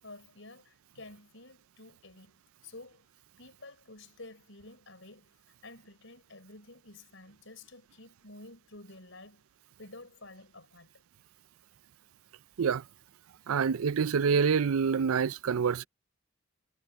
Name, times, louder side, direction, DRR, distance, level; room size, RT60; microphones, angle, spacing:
voice 1, 0.0-3.0 3.4-5.3 5.6-9.4 9.8-10.9, left 2 dB, 60° left, 6.4 m, -51 dB
voice 2, 13.5-15.9, right 6 dB, 80° right, 0.4 m, -26 dB
head